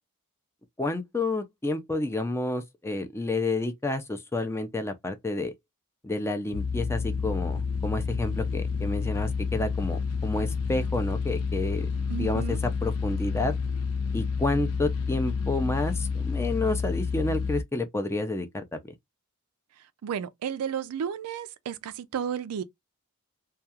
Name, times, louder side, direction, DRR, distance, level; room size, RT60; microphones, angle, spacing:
voice 1, 0.8-5.5 6.0-11.9 12.2-13.5 14.1-18.8, left 2 dB, 10° left, 0.4 m, -30 dB
sound 1, 6.5-17.6, left 5 dB, 85° left, 0.5 m, -29 dB
voice 2, 12.1-12.6 20.0-22.6, right 8 dB, 90° right, 0.4 m, -32 dB
2.3 x 2.3 x 2.7 m
head